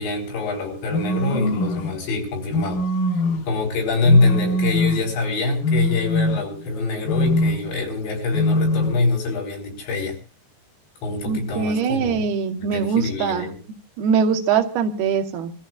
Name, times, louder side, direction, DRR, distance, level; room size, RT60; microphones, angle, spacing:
voice 1, 0.0-2.8 3.5-10.2 11.0-12.2 12.6-13.6, left 3 dB, 90° left, 0 dB, 6.5 m, -24 dB
sound 1, 0.9-2.0 2.5-3.6 4.0-5.1 5.6-6.7 7.0-7.8 8.3-9.1, left 1 dB, 65° left, 2.2 m, -23 dB
voice 2, 11.3-13.5 14.0-15.5, right 6 dB, 75° right, 5 dB, 2.8 m, -22 dB
27.0 x 14.0 x 2.3 m, 0.33 s
omnidirectional pair, 4.9 m